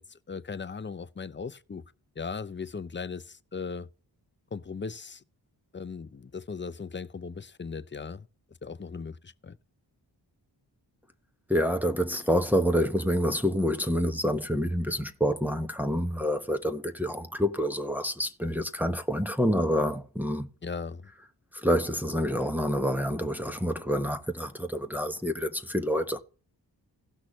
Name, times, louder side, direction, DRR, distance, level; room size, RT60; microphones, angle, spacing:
voice 1, 0.0-1.8 2.2-3.9 4.5-5.2 5.7-8.3 8.6-9.6 20.6-21.1, left 5 dB, 25° left, 0.6 m, -38 dB
voice 2, 11.5-20.5 21.5-26.2, equal, 5° right, 1.1 m, -27 dB
16.5 x 6.0 x 3.2 m
cardioid pair, 60°, 45 cm